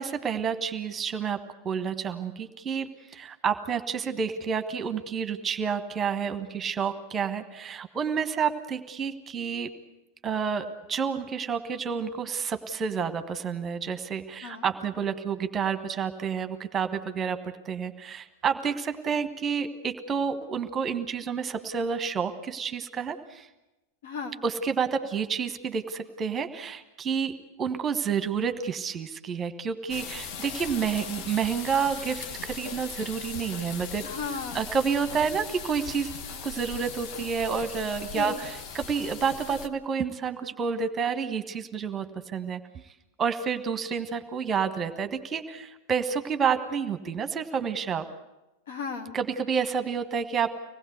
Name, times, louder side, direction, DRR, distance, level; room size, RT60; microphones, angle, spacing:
voice 1, 0.0-1.4 1.6-9.7 10.2-23.5 24.4-34.1 34.5-36.1 36.4-42.8 43.2-48.1 49.1-50.6, right 6 dB, 20° right, 10 dB, 1.4 m, -29 dB
voice 2, 24.0-24.4 34.0-34.7 38.1-38.4 48.7-49.2, left 5 dB, 60° left, 7 dB, 2.3 m, -35 dB
sound 1, 29.9-39.7, left 6 dB, 40° left, 1.3 m, -39 dB
25.0 x 19.0 x 8.2 m, 1.0 s
figure-of-eight pair, 90°, 0 cm